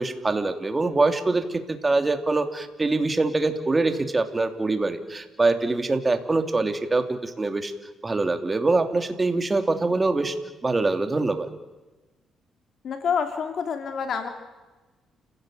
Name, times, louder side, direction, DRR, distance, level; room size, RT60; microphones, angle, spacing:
voice 1, 0.0-7.7 8.0-10.3 10.6-11.5, right 3 dB, 25° right, 7 dB, 2.8 m, -24 dB
voice 2, 12.8-14.3, left 6 dB, 60° left, 6 dB, 2.6 m, -27 dB
29.5 x 16.5 x 9.1 m, 1.2 s
cardioid pair, 90°, 0 cm